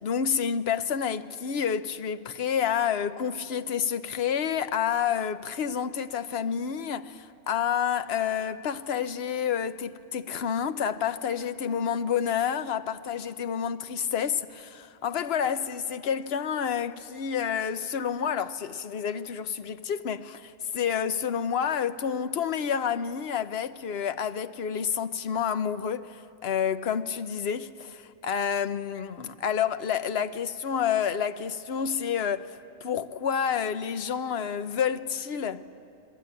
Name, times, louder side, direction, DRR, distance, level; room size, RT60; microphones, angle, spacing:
voice 1, 0.0-35.7, left 8 dB, 60° left, 1.0 m, -29 dB
28.0 x 21.0 x 9.6 m
omnidirectional pair, 1.3 m